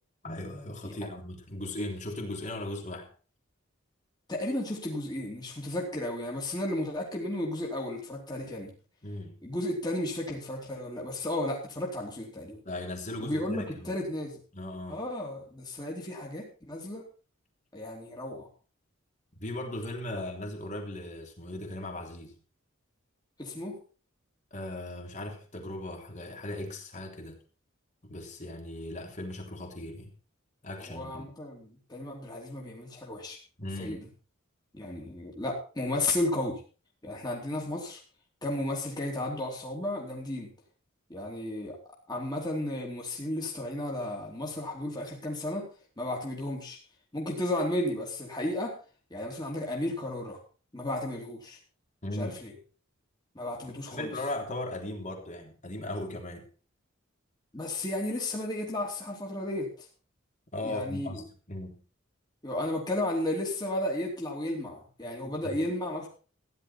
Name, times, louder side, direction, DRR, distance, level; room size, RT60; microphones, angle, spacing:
voice 1, 0.2-3.1 9.0-9.4 12.7-14.0 14.5-15.0 19.4-22.4 24.5-27.4 28.0-30.1 30.6-31.3 33.6-34.0 52.0-52.3 53.9-56.5 60.5-61.8 65.2-65.3, left 1 dB, 35° left, 2 dB, 3.4 m, -38 dB
voice 2, 4.3-8.7 9.4-12.6 13.2-14.4 14.9-17.0 17.7-18.5 23.4-23.8 30.8-33.4 33.8-34.1 34.7-36.6 37.0-38.0 38.4-40.5 41.1-45.7 46.0-46.8 47.1-48.7 49.1-50.4 50.7-51.6 52.2-52.5 53.3-54.1 57.5-59.9 60.6-61.2 62.4-66.1, left 1 dB, 20° left, -2 dB, 3.1 m, -33 dB
15.0 x 11.0 x 4.5 m, 0.37 s
head